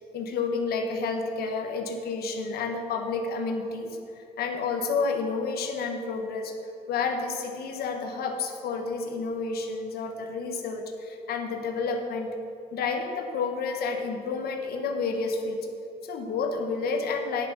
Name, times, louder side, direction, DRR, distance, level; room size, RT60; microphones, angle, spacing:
voice 1, 0.1-6.5 6.9-12.3 12.7-15.7 16.0-17.5, left 4 dB, 65° left, 4 dB, 1.3 m, -30 dB
10.5 x 6.8 x 5.8 m, 2.6 s
cardioid pair, 110°, 17 cm